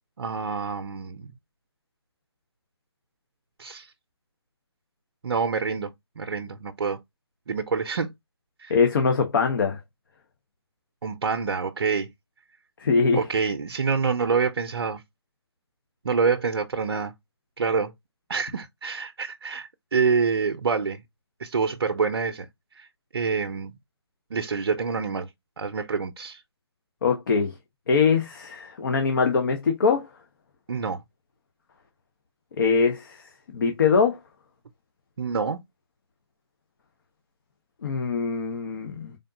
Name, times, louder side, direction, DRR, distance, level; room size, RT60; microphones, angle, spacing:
voice 1, 0.2-1.3 3.6-3.9 5.2-7.0 7.5-8.1 8.6-8.8 11.0-12.1 13.1-15.0 16.0-17.1 17.6-17.9 18.3-21.0 21.4-22.5 22.7-22.9 23.1-23.7 24.3-25.3 25.6-26.4 30.7-31.0 35.2-35.6, right 5 dB, 65° right, 0.6 m, -26 dB
voice 2, 8.7-9.8 12.8-13.2 27.0-27.5 27.9-30.1 32.6-34.2 37.8-39.2, left 5 dB, 50° left, 0.8 m, -23 dB
3.9 x 3.6 x 2.6 m
figure-of-eight pair, 145°, 14 cm